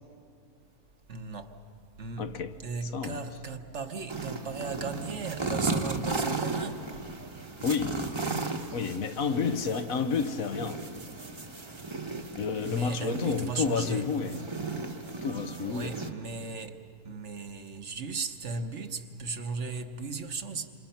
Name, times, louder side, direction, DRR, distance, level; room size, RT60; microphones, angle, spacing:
voice 1, 1.1-1.5 2.0-2.3 2.6-6.8 12.0-12.4 12.6-14.5 15.6-16.8 17.0-20.7, right 4 dB, 55° right, 1.3 m, -36 dB
voice 2, 2.2-2.5 2.9-3.2 7.6-8.0 8.7-10.8 12.3-14.5 15.2-16.0, left 5 dB, 70° left, 1.3 m, -30 dB
sound 1, 4.1-16.1, right 3 dB, 20° right, 1.1 m, -35 dB
28.0 x 26.5 x 5.7 m
omnidirectional pair, 1.5 m